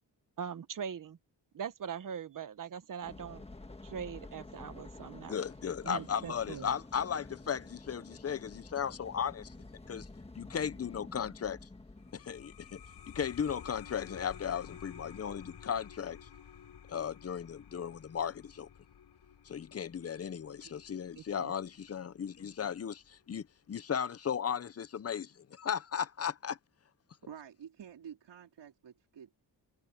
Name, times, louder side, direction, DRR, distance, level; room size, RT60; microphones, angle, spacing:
voice 1, 0.4-1.2 1.5-3.4 3.8-5.3 5.8-6.7 21.2-21.5, right 7 dB, 50° right, 1.1 m, -41 dB
sound 1, 3.0-14.8, left 2 dB, 15° left, 1.4 m, -51 dB
voice 2, 5.3-9.5 9.9-10.1 10.3-11.6 12.1-12.8 13.1-16.3 16.9-18.7 19.4-26.6, left 8 dB, 35° left, 0.6 m, -36 dB
sound 2, 12.0-23.1, left 8 dB, 70° left, 6.7 m, -53 dB
voice 3, 27.2-29.3, right 8 dB, 90° right, 3.9 m, -49 dB
wide cardioid pair, 160°, 41 cm